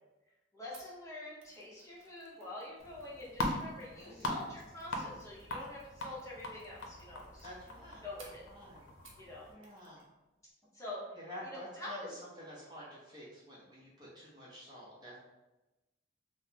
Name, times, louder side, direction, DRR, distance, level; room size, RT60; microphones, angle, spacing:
voice 1, 0.5-7.5 8.0-8.4 9.2-9.5 10.7-11.1 11.5-12.1, left 1 dB, 15° left, -7 dB, 0.7 m, -46 dB
Mechanisms, 0.7-9.3 9.6-10.1 10.3-10.5, right 3 dB, 80° right, 0.7 m, -63 dB
sound 1, 2.8-9.5, left 1 dB, 90° left, 0.6 m, -41 dB
voice 2, 3.9-4.5 7.4-8.1 8.5-8.9 9.5-10.0 11.1-15.2, equal, 20° right, -7 dB, 0.7 m, -50 dB
3.6 x 2.0 x 2.8 m, 1.0 s
head